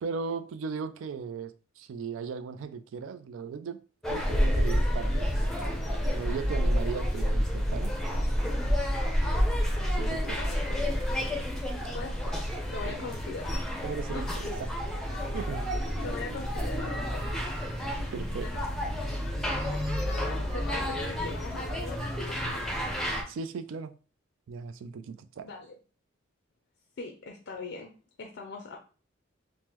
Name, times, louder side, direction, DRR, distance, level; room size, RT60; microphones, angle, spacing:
voice 1, 0.0-3.8 4.1-5.5 6.1-8.0 9.9-10.4 12.9-13.1 13.8-14.8 15.3-15.8 17.8-18.5 23.3-24.0 24.5-25.5, right 5 dB, 80° right, 0.3 m, -37 dB
sound 1, 4.0-23.2, equal, 5° left, 0.5 m, -29 dB
voice 2, 10.4-10.9 11.6-13.7 14.1-14.5 16.0-17.4 17.7-17.8 18.4-18.7 20.1-22.8 25.4-25.7 27.0-27.9 28.2-28.8, left 3 dB, 60° left, 0.4 m, -41 dB
3.5 x 2.1 x 2.9 m
head